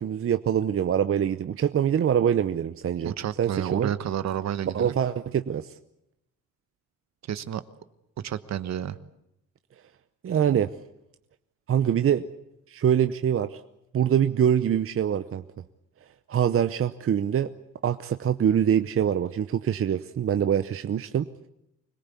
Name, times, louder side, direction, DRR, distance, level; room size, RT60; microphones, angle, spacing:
voice 1, 0.0-3.9 4.7-5.7 10.2-10.7 11.7-12.3 12.7-13.6 13.9-15.4 16.3-17.5 17.8-21.3, right 9 dB, 45° right, 10 dB, 0.8 m, -24 dB
voice 2, 3.0-5.0 7.3-7.6 8.2-9.0, right 10 dB, 60° right, 13 dB, 1.3 m, -30 dB
25.5 x 18.5 x 8.4 m, 0.83 s
cardioid pair, 90°, 30 cm